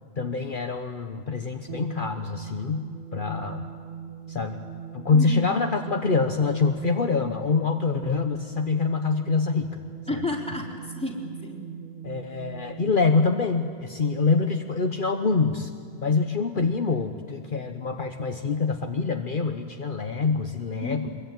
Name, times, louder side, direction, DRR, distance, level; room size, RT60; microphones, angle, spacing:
voice 1, 0.2-3.7 4.3-4.6 4.9-9.8 10.1-10.2 12.0-15.7 16.0-21.1, left 4 dB, 55° left, 5 dB, 1.2 m, -25 dB
sound 1, 1.7-14.5, right 8 dB, 60° right, 1.7 m, -41 dB
voice 2, 5.1-5.5 10.1-11.6 20.8-21.1, left 1 dB, 5° left, -1 dB, 3.4 m, -31 dB
24.5 x 22.0 x 9.3 m, 2.1 s
omnidirectional pair, 1.0 m